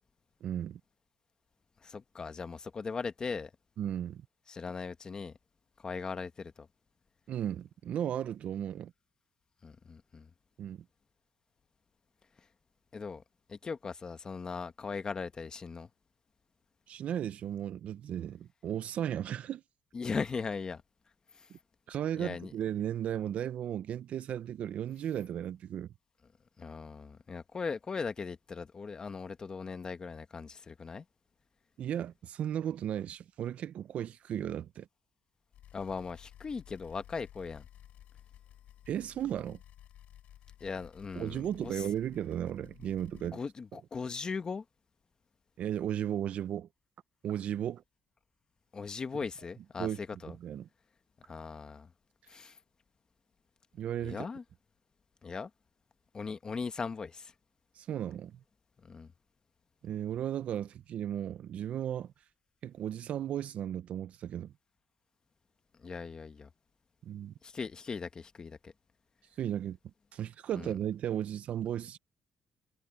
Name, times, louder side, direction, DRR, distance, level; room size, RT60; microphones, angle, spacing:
voice 1, 0.4-0.8 3.8-4.2 7.3-8.9 10.6-10.8 16.9-19.6 21.9-25.9 31.8-34.9 38.9-39.6 41.2-43.4 45.6-46.7 47.2-47.8 49.8-50.0 50.4-50.7 53.8-54.3 57.7-58.4 59.8-62.1 62.6-64.5 67.0-67.3 69.4-69.8 70.1-72.0, right 10 dB, 60° right, 0.5 m, -35 dB
voice 2, 1.8-3.5 4.5-5.3 5.8-6.7 9.6-10.3 12.9-13.2 13.5-15.9 19.9-20.8 21.3-21.5 22.2-22.5 26.6-31.0 35.7-37.6 40.6-41.8 43.1-44.6 48.7-50.3 51.2-51.9 52.3-52.6 54.0-54.4 55.2-55.5 56.1-57.3 58.8-59.1 65.8-66.5 67.4-68.7 70.5-70.7, left 5 dB, 30° left, 1.2 m, -39 dB
sound 1, 35.5-43.3, left 11 dB, 75° left, 7.6 m, -55 dB
cardioid pair, 115°, 2 cm